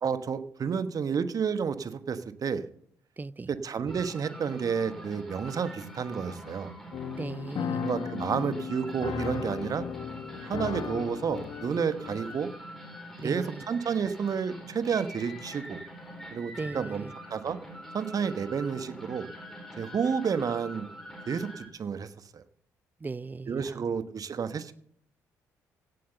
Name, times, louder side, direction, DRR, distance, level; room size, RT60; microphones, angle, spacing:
voice 1, 0.0-2.7 3.5-6.7 7.8-9.8 10.4-12.5 13.2-15.8 16.3-17.0 17.3-17.6 17.9-19.3 19.8-20.9 21.3-22.4 23.5-24.7, right 6 dB, 45° right, 1.2 m, -30 dB
voice 2, 3.2-3.5 7.1-7.9 13.2-13.6 16.6-17.1 23.0-23.9, right 3 dB, 20° right, 0.5 m, -38 dB
sound 1, 3.9-21.7, equal, 5° left, 4.3 m, -45 dB
sound 2, 6.9-12.6, left 7 dB, 50° left, 1.3 m, -36 dB
16.5 x 8.0 x 6.9 m
figure-of-eight pair, 45°, 9 cm